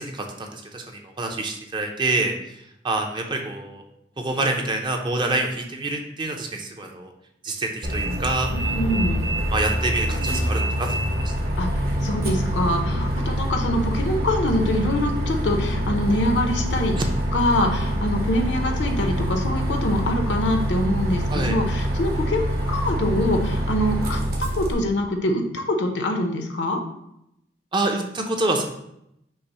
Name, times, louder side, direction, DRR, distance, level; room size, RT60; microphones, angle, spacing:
voice 1, 0.0-2.4 2.8-3.8 4.2-7.1 7.4-8.5 9.5-11.0 11.3-11.4 13.2-13.3 17.0-17.1 21.3-21.6 27.7-28.6, right 2 dB, 25° right, 3 dB, 0.5 m, -26 dB
Bus, 7.8-24.7, equal, 55° right, 0.9 m, -25 dB
voice 2, 8.5-9.2 11.6-16.9 17.3-26.8, left 1 dB, 70° left, 3 dB, 0.7 m, -24 dB
5.5 x 2.0 x 4.1 m, 0.79 s
head